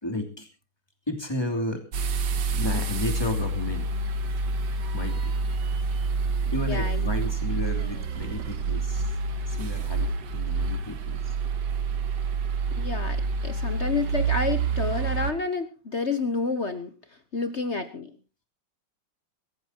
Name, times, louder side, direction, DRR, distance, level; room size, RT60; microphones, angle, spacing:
voice 1, 0.0-0.5 1.1-1.8 2.5-3.9 4.9-5.3 6.5-9.1 9.5-11.3, left 1 dB, 10° left, 3 dB, 2.9 m, -32 dB
sound 1, 1.9-15.3, right 4 dB, 60° right, 1.7 m, -28 dB
voice 2, 6.5-7.1 12.8-13.2 13.4-16.9 17.3-18.1, left 4 dB, 45° left, 9 dB, 1.0 m, -29 dB
23.5 x 14.0 x 2.9 m, 0.32 s
omnidirectional pair, 2.3 m